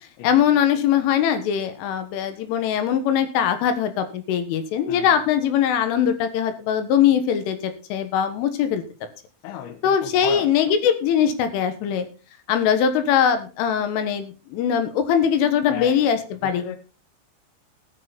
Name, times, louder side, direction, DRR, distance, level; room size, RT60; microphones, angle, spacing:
voice 1, 0.0-8.8 9.8-12.1 12.5-16.7, left 8 dB, 85° left, 9 dB, 3.9 m, -21 dB
voice 2, 4.9-5.2 9.4-10.7 15.7-16.2 16.4-16.8, left 10 dB, 65° left, 8 dB, 3.0 m, -35 dB
19.5 x 6.9 x 4.3 m, 0.33 s
omnidirectional pair, 5.6 m